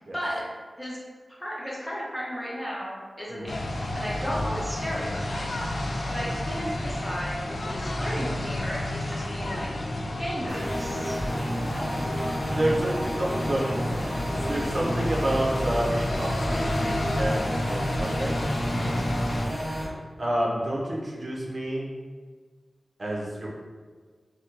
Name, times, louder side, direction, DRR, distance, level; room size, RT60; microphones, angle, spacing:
voice 1, 1.4-3.6 4.0-5.6 6.1-9.7 10.2-11.1 18.7-19.0, equal, 10° left, -6 dB, 1.0 m, -34 dB
sound 1, 3.5-19.5, left 1 dB, 80° left, 0.3 m, -31 dB
sound 2, 10.5-19.8, equal, 35° left, 1.2 m, -31 dB
voice 2, 12.5-13.6 14.5-18.3 20.2-21.9 23.0-23.5, right 1 dB, 50° right, -4 dB, 0.7 m, -29 dB
3.5 x 2.2 x 2.8 m, 1.5 s
wide cardioid pair, 75°, 0 cm